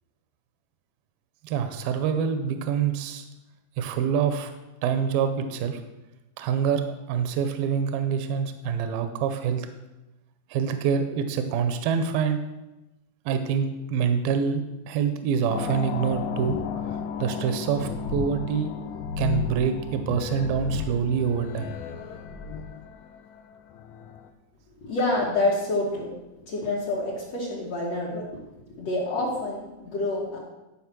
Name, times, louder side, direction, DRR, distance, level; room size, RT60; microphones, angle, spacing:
voice 1, 1.4-3.2 3.8-4.5 4.8-5.8 6.4-9.7 10.5-12.4 13.3-14.6 14.9-16.6 17.2-18.7 19.2-21.7, right 7 dB, 80° right, 8 dB, 2.4 m, -26 dB
sound 1, 15.5-24.3, left 7 dB, 80° left, 2.2 m, -33 dB
voice 2, 24.8-26.2 26.5-28.4 28.7-30.4, left 2 dB, 55° left, -5 dB, 2.1 m, -27 dB
11.5 x 5.0 x 6.0 m, 0.99 s
omnidirectional pair, 4.3 m